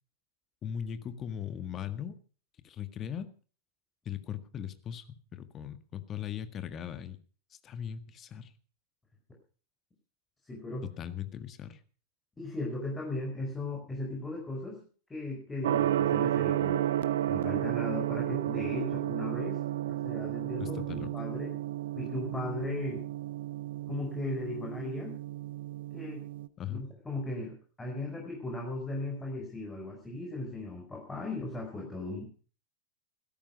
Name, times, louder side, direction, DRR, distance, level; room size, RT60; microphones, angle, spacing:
voice 1, 0.6-2.1 2.6-3.3 4.0-7.2 7.6-8.5 10.8-11.8 20.6-21.1 26.6-26.8, left 9 dB, 30° left, 11 dB, 1.7 m, -39 dB
voice 2, 10.5-10.9 12.4-14.8 15.1-16.8 17.3-19.6 19.9-21.5 21.9-23.0 23.9-25.2 25.9-26.2 26.7-32.3, left 2 dB, 15° left, -1 dB, 5.1 m, -37 dB
Gong, 15.6-26.5, right 12 dB, 60° right, 0.7 m, -32 dB
16.5 x 13.0 x 5.2 m, 0.40 s
figure-of-eight pair, 90°, 0 cm